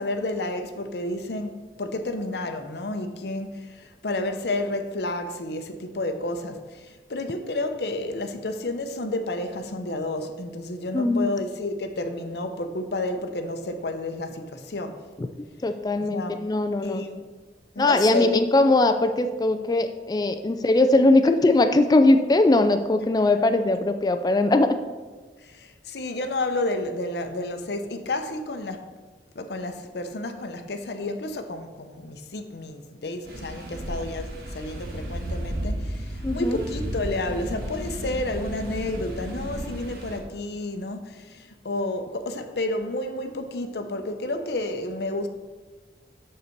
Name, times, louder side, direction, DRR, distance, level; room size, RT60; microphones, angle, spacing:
voice 1, 0.0-15.0 16.0-16.4 16.8-17.2 17.8-18.4 25.6-28.8 29.4-45.3, left 2 dB, 65° left, 0.7 m, -31 dB
voice 2, 10.9-11.3 15.2-15.3 15.6-17.0 17.8-24.8 36.2-36.6, left 2 dB, 20° left, 0.3 m, -20 dB
sound 1, 33.3-40.2, right 1 dB, 55° right, 1.4 m, -33 dB
6.6 x 6.5 x 4.5 m
head